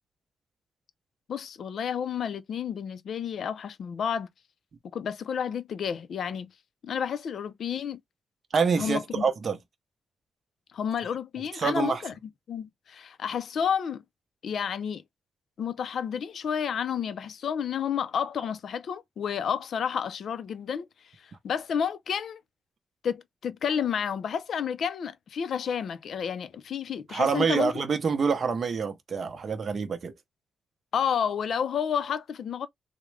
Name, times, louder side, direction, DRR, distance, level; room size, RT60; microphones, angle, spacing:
voice 1, 1.3-4.3 4.9-6.5 6.8-8.0 8.8-9.2 10.7-12.1 12.5-14.0 14.4-15.0 15.6-20.9 21.2-22.4 23.0-27.8 30.9-32.7, left 7 dB, 60° left, 0.4 m, -30 dB
voice 2, 8.5-9.6 11.6-12.0 27.1-30.1, right 5 dB, 40° right, 0.6 m, -26 dB
3.6 x 2.0 x 3.2 m
wide cardioid pair, 165°, 0 cm